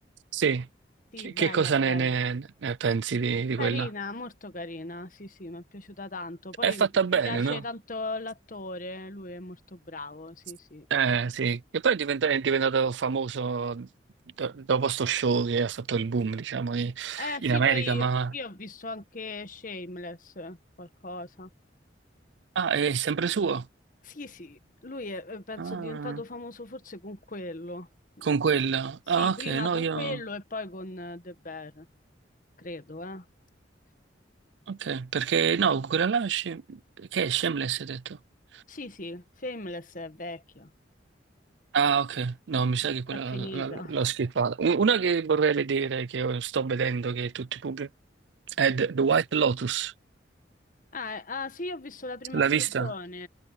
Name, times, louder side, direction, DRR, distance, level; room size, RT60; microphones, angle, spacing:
voice 1, 0.3-0.7 1.2-3.9 6.6-7.6 10.9-13.9 14.4-18.3 22.6-23.7 25.6-26.2 28.2-30.2 34.7-38.2 38.5-38.6 41.7-47.9 48.6-49.9 52.3-52.9, right 6 dB, 75° right, 0.5 m, -26 dB
voice 2, 1.1-2.1 3.6-10.9 17.2-18.1 18.3-21.5 24.0-27.9 28.2-28.3 29.2-31.9 32.6-33.2 38.7-40.7 42.8-43.9 50.9-52.4 52.8-53.3, left 2 dB, 45° left, 1.5 m, -38 dB
head